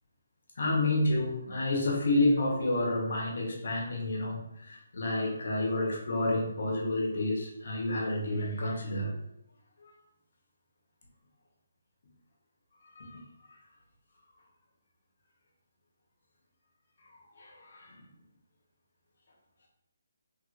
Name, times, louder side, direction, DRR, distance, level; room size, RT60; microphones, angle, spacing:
voice 1, 0.6-9.2 12.9-13.2 17.3-18.0, left 2 dB, 65° left, -1 dB, 1.1 m, -29 dB
3.3 x 2.9 x 2.5 m, 0.79 s
hypercardioid pair, 155°, 0 cm